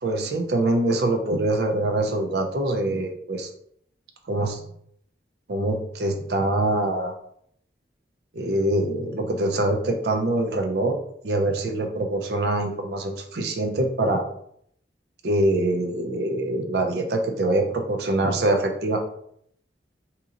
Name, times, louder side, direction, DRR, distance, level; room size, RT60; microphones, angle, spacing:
voice 1, 0.0-3.5 4.3-4.6 5.5-7.1 8.3-11.0 11.2-14.2 15.2-19.0, right 1 dB, 60° right, 4 dB, 0.5 m, -24 dB
3.9 x 2.9 x 2.4 m, 0.69 s
head